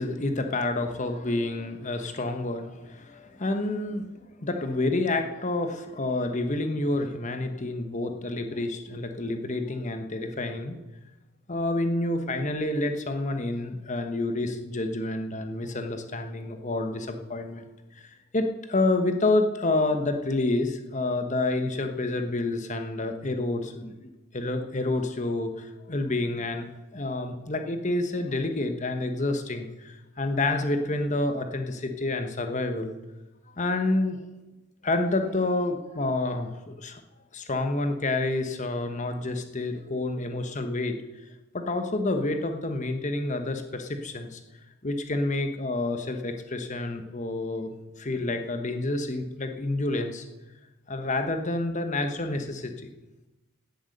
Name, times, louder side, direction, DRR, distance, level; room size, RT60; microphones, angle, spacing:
voice 1, 0.0-4.0 4.4-10.8 11.5-17.7 18.0-32.9 33.6-34.2 34.8-37.0 37.3-41.0 41.5-44.4 44.8-47.7 48.0-50.2 50.9-52.9, left 2 dB, 35° left, 6 dB, 1.1 m, -28 dB
16.5 x 8.2 x 6.6 m, 1.1 s
head